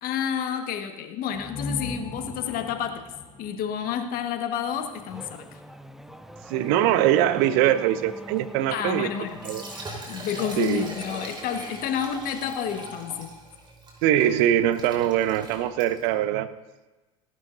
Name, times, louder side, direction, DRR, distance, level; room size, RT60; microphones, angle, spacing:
voice 1, 0.0-3.0 3.4-5.6 8.7-9.4 10.1-13.3, left 8 dB, 55° left, 6 dB, 1.5 m, -30 dB
sound 1, 1.3-5.0, left 2 dB, 40° left, 3.2 m, -38 dB
Race car auto racing / Accelerating revving vroom, 4.6-11.8, equal, ahead, 0.6 m, -44 dB
voice 2, 6.5-9.1 9.4-9.6 10.6-10.8 14.0-16.5, right 11 dB, 65° right, 14 dB, 0.7 m, -22 dB
Liquid, 9.3-16.1, right 2 dB, 25° right, 4.0 m, -40 dB
17.5 x 11.0 x 2.6 m, 1.1 s
hypercardioid pair, 80°, 18 cm